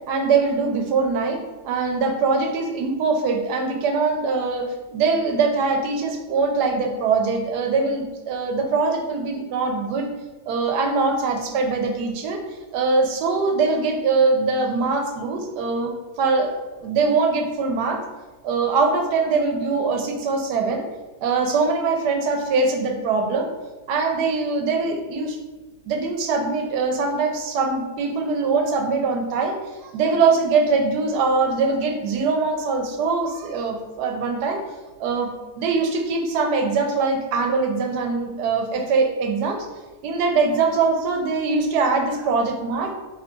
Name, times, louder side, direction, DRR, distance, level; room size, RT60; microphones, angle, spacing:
voice 1, 0.1-1.4 1.6-10.1 10.5-12.4 12.7-18.0 18.4-20.9 21.2-23.5 23.9-25.4 25.9-29.6 29.8-34.6 35.0-39.7 40.0-42.9, right 4 dB, 80° right, 3 dB, 1.2 m, -22 dB
3.6 x 3.0 x 3.8 m, 1.2 s
omnidirectional pair, 1.7 m